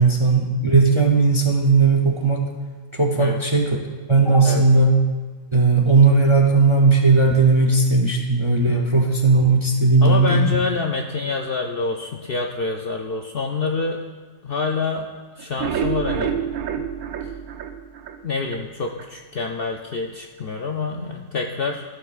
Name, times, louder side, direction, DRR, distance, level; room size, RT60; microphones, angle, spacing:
voice 1, 0.0-2.5 2.9-5.0 5.5-10.6, right 3 dB, 35° right, 1 dB, 0.5 m, -17 dB
voice 2, 10.0-14.0 14.4-15.1 15.4-16.3 16.8-16.9 17.2-17.3 18.2-21.8, left 4 dB, 60° left, 2 dB, 0.6 m, -27 dB
sound 1, 15.4-18.6 19.0-19.1 19.5-19.6 19.9-20.0, right 8 dB, 85° right, 1.1 m, -28 dB
15.0 x 6.9 x 2.4 m, 1.5 s
omnidirectional pair, 1.5 m